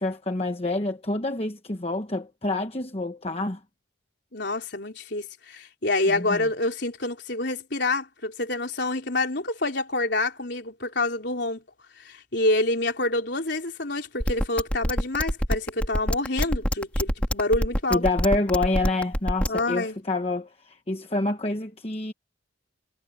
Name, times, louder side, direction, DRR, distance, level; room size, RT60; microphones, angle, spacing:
voice 1, 0.0-3.6 6.1-6.5 17.9-22.1, left 2 dB, 30° left, 1.1 m, -27 dB
voice 2, 4.3-11.6 12.0-18.0 19.5-20.0, left 2 dB, 55° left, 4.4 m, -27 dB
sound 1, 14.2-19.6, equal, 5° left, 2.5 m, -24 dB
head